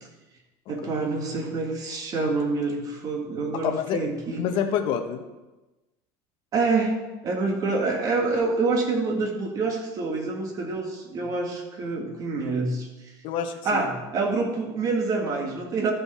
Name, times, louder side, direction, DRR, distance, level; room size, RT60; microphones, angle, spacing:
voice 1, 0.7-4.5 6.5-6.9 7.2-12.9 13.6-15.9, right 3 dB, 35° right, 2 dB, 1.8 m, -26 dB
voice 2, 3.6-4.0 4.4-5.2 13.2-13.9, left 8 dB, 50° left, 6 dB, 1.0 m, -27 dB
13.0 x 5.4 x 4.2 m, 1.1 s
cardioid pair, 140°, 10 cm